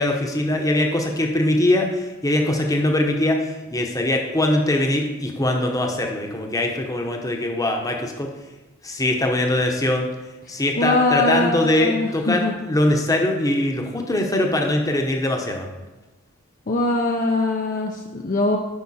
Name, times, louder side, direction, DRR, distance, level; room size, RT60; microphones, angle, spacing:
voice 1, 0.0-8.3 8.8-10.1 10.5-15.7, left 1 dB, 15° left, 2 dB, 0.9 m, -22 dB
voice 2, 10.8-12.5 16.7-18.6, left 2 dB, 40° left, 2 dB, 0.5 m, -22 dB
8.5 x 5.7 x 4.2 m, 1.1 s
head